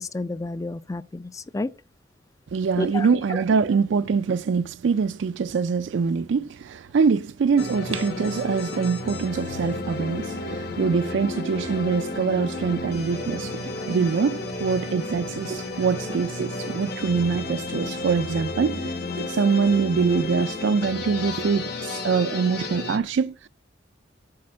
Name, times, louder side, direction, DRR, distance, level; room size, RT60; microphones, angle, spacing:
voice 1, 0.0-1.7 2.8-3.1, left 2 dB, 15° left, 0.3 m, -30 dB
voice 2, 2.5-23.5, right 5 dB, 70° right, 0.4 m, -24 dB
sound 1, 7.6-23.0, left 2 dB, 55° left, 1.5 m, -32 dB
8.6 x 5.2 x 7.4 m
head